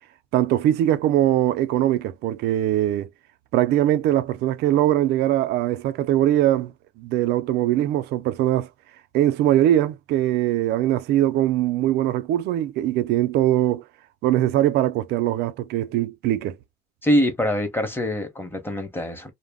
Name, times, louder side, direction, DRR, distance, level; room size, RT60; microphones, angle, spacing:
voice 1, 0.3-3.1 3.5-6.7 7.0-8.7 9.1-13.8 14.2-16.6, right 13 dB, 80° right, 0.4 m, -21 dB
voice 2, 17.0-19.3, equal, 10° left, 0.8 m, -24 dB
2.2 x 2.0 x 3.4 m
cardioid pair, 110°, 17 cm